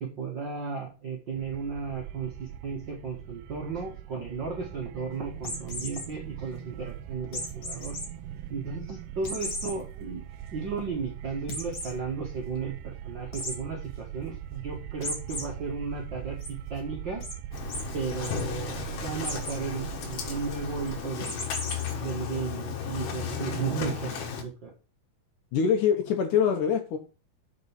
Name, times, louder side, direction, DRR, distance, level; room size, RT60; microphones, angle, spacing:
voice 1, 0.0-8.0 8.5-10.2 10.5-17.2 17.9-21.5 21.9-24.7, right 5 dB, 55° right, -1 dB, 1.2 m, -34 dB
sound 1, 1.4-21.0, right 11 dB, 85° right, 2.5 m, -41 dB
sound 2, 5.4-6.1 7.3-8.1 8.5-8.6 9.2-9.7 10.2-10.3 10.6-10.7 11.5-11.9 13.3-13.6 15.0-15.4 15.9-16.5 17.2-17.3 17.7-17.8 18.1-18.4 19.2-19.6 21.2-21.9, left 1 dB, 40° left, 2.2 m, -35 dB
Engine starting, 17.5-24.4, left 7 dB, 90° left, 3.5 m, -35 dB
voice 2, 25.5-27.0, left 7 dB, 70° left, 5 dB, 2.2 m, -24 dB
6.8 x 5.2 x 7.0 m, 0.33 s
omnidirectional pair, 4.4 m